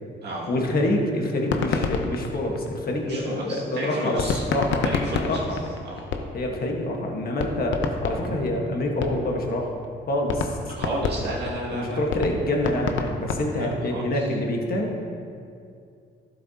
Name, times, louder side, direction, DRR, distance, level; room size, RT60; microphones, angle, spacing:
voice 1, 0.5-4.9 5.2-5.6 6.3-9.7 10.1-10.7 11.7-15.0, left 1 dB, 50° left, 0 dB, 1.5 m, -26 dB
sound 1, 1.5-3.2 4.2-6.6 6.9-7.0 7.4-9.5 9.8-9.9 10.3-13.9, left 5 dB, 70° left, 0.8 m, -28 dB
voice 2, 3.0-4.4 4.8-5.4 5.8-6.1 10.7-12.0 13.5-14.3, right 1 dB, 60° right, -4 dB, 2.2 m, -32 dB
12.0 x 7.6 x 2.9 m, 2.4 s
cardioid pair, 90°, 20 cm